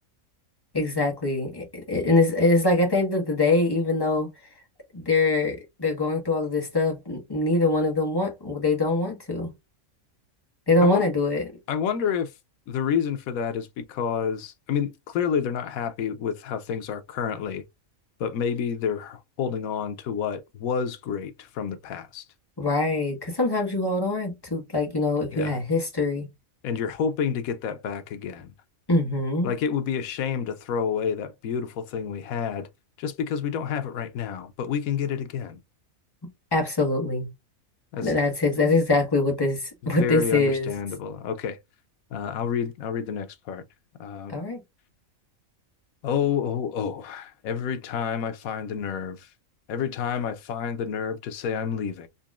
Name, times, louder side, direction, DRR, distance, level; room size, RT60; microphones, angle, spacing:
voice 1, 0.7-4.3 4.9-9.5 10.7-11.4 22.6-26.3 28.9-29.5 36.5-37.3 38.0-40.7 44.3-44.6, left 2 dB, 20° left, 1.3 m, -23 dB
voice 2, 11.7-12.3 12.7-17.6 18.2-22.2 25.3-25.6 26.6-28.5 29.4-32.7 33.0-35.6 37.9-38.1 40.0-41.6 42.1-43.6 44.0-44.3 46.0-49.3 49.7-52.1, left 7 dB, 90° left, 1.1 m, -29 dB
4.0 x 2.9 x 2.3 m
omnidirectional pair, 1.4 m